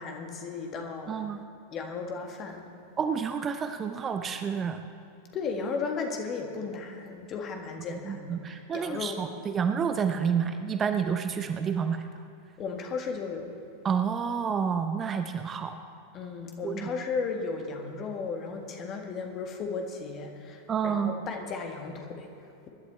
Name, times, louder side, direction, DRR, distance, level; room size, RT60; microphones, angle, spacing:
voice 1, 0.0-1.2 1.7-2.6 5.3-9.2 12.6-13.5 16.1-22.7, left 4 dB, 30° left, 3 dB, 1.8 m, -35 dB
voice 2, 1.1-1.4 3.0-4.8 7.9-12.1 13.8-15.8 16.6-16.9 20.7-21.1, right 7 dB, 25° right, 8 dB, 0.7 m, -29 dB
24.0 x 11.5 x 3.3 m, 2.8 s
figure-of-eight pair, 90°, 0 cm